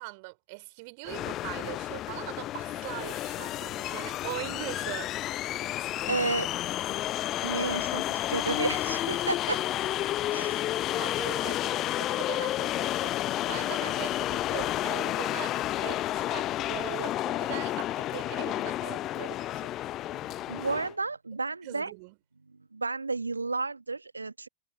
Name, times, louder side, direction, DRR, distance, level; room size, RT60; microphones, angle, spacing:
voice 1, 0.0-5.2 10.4-19.8 21.6-22.2, right 30 dB, 45° right, 4.7 m, -41 dB
sound 1, 1.1-20.9, left 14 dB, 35° left, 0.5 m, -31 dB
voice 2, 6.1-6.5 6.9-7.0 7.4-9.6 10.3-10.6 20.1-20.2 20.5-21.9 22.5-24.5, right 3 dB, 80° right, 1.2 m, -32 dB
figure-of-eight pair, 90°, 0 cm